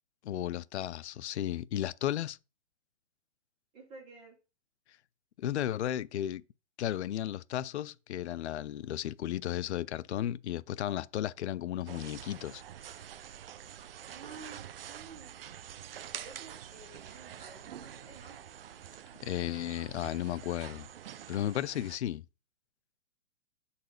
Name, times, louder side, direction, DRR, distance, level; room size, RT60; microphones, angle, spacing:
voice 1, 0.2-2.4 5.4-6.4 6.8-12.6 19.2-20.9 21.3-22.2, left 12 dB, 70° left, 0.5 m, -34 dB
voice 2, 3.7-4.3 14.1-15.5 16.2-18.4, right 4 dB, 20° right, 4.3 m, -51 dB
sound 1, 11.9-22.0, right 10 dB, 55° right, 0.6 m, -47 dB
6.6 x 4.2 x 6.4 m
hypercardioid pair, 160°, 35 cm